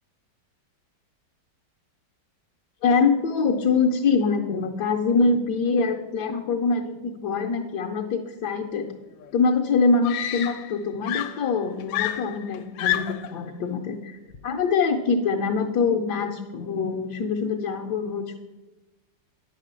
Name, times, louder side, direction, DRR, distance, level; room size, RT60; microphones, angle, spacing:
voice 1, 2.8-8.8 9.3-18.3, left 4 dB, 65° left, 0 dB, 1.2 m, -24 dB
Screaming, 9.2-9.3 10.0-10.8 11.1-13.4 14.3-14.6, left 12 dB, 80° left, 1.4 m, -29 dB
9.5 x 4.9 x 7.4 m, 1.1 s
omnidirectional pair, 2.1 m